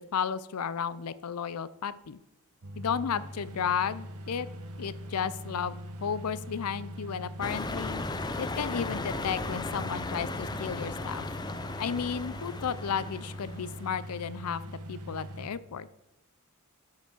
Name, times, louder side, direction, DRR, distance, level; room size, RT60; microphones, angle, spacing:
voice 1, 0.1-2.2 2.8-4.5 4.8-5.8 6.0-8.0 8.4-11.2 11.8-15.9, left 7 dB, 85° left, 17 dB, 0.5 m, -33 dB
sound 1, 2.6-15.5, equal, 85° right, 1.1 m, -42 dB
sound 2, 7.4-14.0, left 2 dB, 20° left, 0.5 m, -36 dB
9.9 x 5.8 x 6.1 m, 0.90 s
head